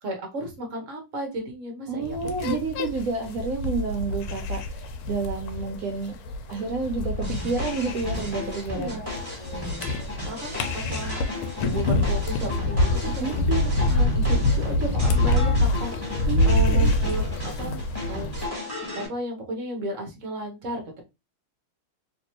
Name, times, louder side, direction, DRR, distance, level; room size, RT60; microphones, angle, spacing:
voice 1, 0.0-2.3 8.8-9.1 9.4-9.9 10.2-11.2 11.6-17.8 18.1-18.3 18.6-21.0, right 1 dB, 45° right, 1.2 m, -34 dB
voice 2, 1.9-4.6 5.1-6.2 6.5-9.0 13.2-13.4 16.3-16.9, right 4 dB, 75° right, 0.8 m, -29 dB
sound 1, 2.0-18.5, left 1 dB, 85° left, 1.5 m, -26 dB
sound 2, 7.2-19.1, left 2 dB, 10° right, 1.5 m, -35 dB
sound 3, 11.0-11.7 12.7-13.1 13.7-14.2 15.0-15.5, left 2 dB, 65° left, 1.5 m, -47 dB
3.3 x 3.1 x 2.9 m
omnidirectional pair, 2.3 m